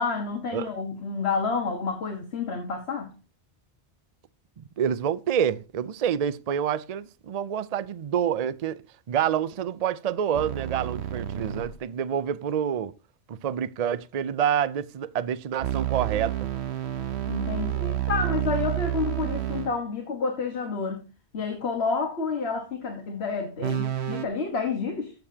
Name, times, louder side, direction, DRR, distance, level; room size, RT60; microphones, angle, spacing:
voice 1, 0.0-3.1 17.3-21.1 21.3-25.1, left 4 dB, 80° left, 1.6 m, -29 dB
voice 2, 4.6-8.8 9.1-12.9 13.3-16.5, right 9 dB, 45° right, 0.5 m, -27 dB
sound 1, 10.3-11.8 15.6-19.8 23.6-24.2, right 13 dB, 85° right, 1.2 m, -29 dB
14.0 x 6.9 x 2.8 m
omnidirectional pair, 1.1 m